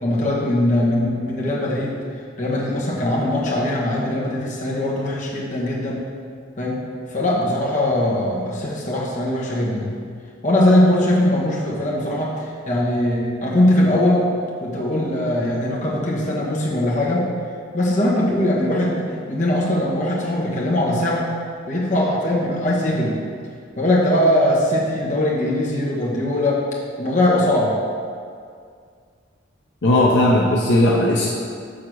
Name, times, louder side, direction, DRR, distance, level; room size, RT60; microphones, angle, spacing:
voice 1, 0.0-2.0 2.4-6.0 6.6-6.8 7.1-10.0 10.4-14.3 14.6-17.3 17.7-21.3 21.7-23.1 23.8-26.7 27.0-27.8, left 1 dB, 40° left, -5 dB, 1.3 m, -20 dB
voice 2, 29.8-31.3, left 1 dB, 70° left, -3 dB, 0.7 m, -16 dB
6.4 x 3.8 x 6.2 m, 2.2 s
head